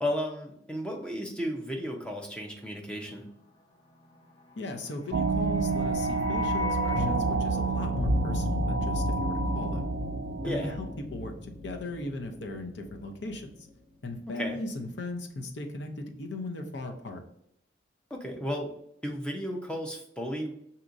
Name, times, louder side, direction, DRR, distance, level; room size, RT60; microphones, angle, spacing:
voice 1, 0.0-3.3 10.4-10.7 14.4-14.6 18.1-18.7 19.0-20.5, equal, 5° left, 1 dB, 0.6 m, -33 dB
voice 2, 4.6-9.9 10.4-13.5 14.0-17.2, left 2 dB, 75° left, 3 dB, 0.7 m, -38 dB
sound 1, 5.1-11.0, right 4 dB, 75° right, 0.3 m, -29 dB
sound 2, 5.2-13.4 13.6-13.7, left 1 dB, 25° left, 1.0 m, -34 dB
6.0 x 2.8 x 2.6 m, 0.74 s
head